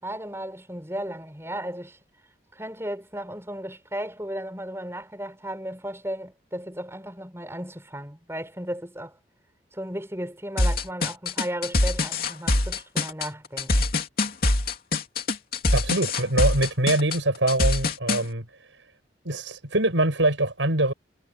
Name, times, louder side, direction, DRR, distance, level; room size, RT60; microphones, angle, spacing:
voice 1, 0.0-2.0 2.5-9.2 9.7-13.9, right 1 dB, 15° right, 6.8 m, -35 dB
sound 1, 10.6-18.2, left 2 dB, 50° left, 3.0 m, -23 dB
voice 2, 15.7-18.4 19.2-20.9, right 2 dB, 80° right, 7.5 m, -23 dB
head